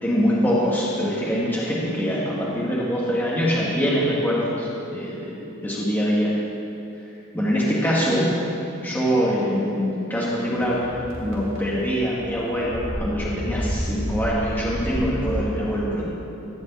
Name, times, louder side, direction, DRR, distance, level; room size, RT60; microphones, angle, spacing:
voice 1, 0.0-6.3 7.3-8.3 8.8-10.9 11.2-16.1, equal, 10° left, -7 dB, 1.9 m, -24 dB
sound 1, 10.6-15.4, equal, 70° right, 2.3 m, -31 dB
14.5 x 5.3 x 8.3 m, 2.8 s
head